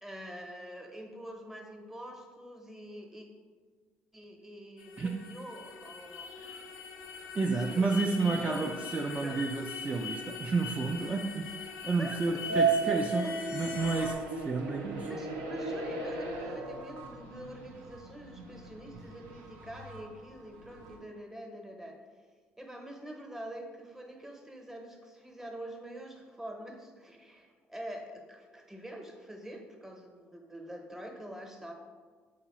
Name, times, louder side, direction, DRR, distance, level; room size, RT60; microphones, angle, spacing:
voice 1, 0.0-3.3 4.1-6.7 7.6-8.8 9.2-9.6 12.0-12.2 12.5-13.3 15.1-22.0 22.6-31.7, right 1 dB, 10° right, 3 dB, 0.7 m, -45 dB
sound 1, 4.8-14.1, right 2 dB, 85° left, 0.4 m, -35 dB
voice 2, 7.3-15.1, right 4 dB, 25° right, 2 dB, 0.3 m, -31 dB
sound 2, 13.7-21.0, right 1 dB, 80° right, 0.6 m, -41 dB
3.9 x 3.7 x 3.0 m, 1.6 s
supercardioid pair, 70°, 5 cm